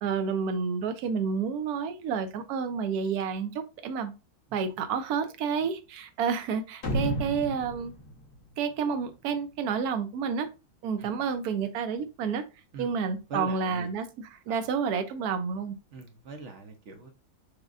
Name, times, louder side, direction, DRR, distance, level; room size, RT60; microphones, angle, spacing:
voice 1, 0.0-4.1 4.5-7.9 8.6-10.5 10.8-12.4 12.8-15.7, right 6 dB, 80° right, 1.1 m, -30 dB
sound 1, 6.8-9.3, equal, 45° left, 1.3 m, -33 dB
voice 2, 13.3-13.9 15.9-17.1, right 3 dB, 60° right, 0.8 m, -41 dB
6.3 x 2.2 x 2.4 m
omnidirectional pair, 1.6 m